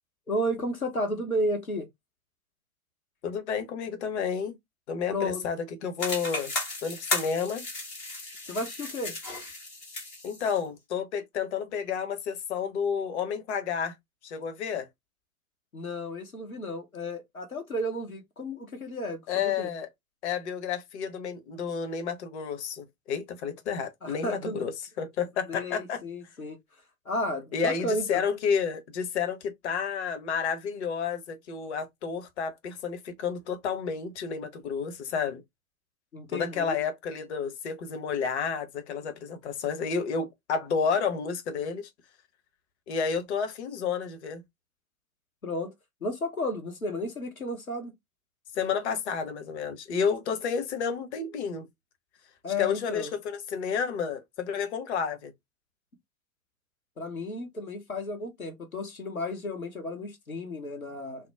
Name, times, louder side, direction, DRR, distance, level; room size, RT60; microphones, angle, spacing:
voice 1, 0.3-1.9 5.1-5.4 8.4-9.2 15.7-19.7 24.0-24.6 25.5-26.6 27.0-28.2 36.1-36.8 45.4-45.7 46.0-47.9 52.4-53.1 57.0-61.3, left 1 dB, 85° left, 1.0 m, -33 dB
voice 2, 3.2-4.6 4.9-6.5 6.8-7.7 10.2-14.0 14.2-14.9 19.3-19.9 20.2-26.0 27.5-35.4 36.3-41.9 42.9-44.4 48.5-51.7 52.6-55.3, left 6 dB, 50° left, 0.9 m, -31 dB
sound 1, 6.0-10.6, left 2 dB, 10° left, 0.3 m, -35 dB
3.0 x 2.1 x 3.2 m
figure-of-eight pair, 105°, 42 cm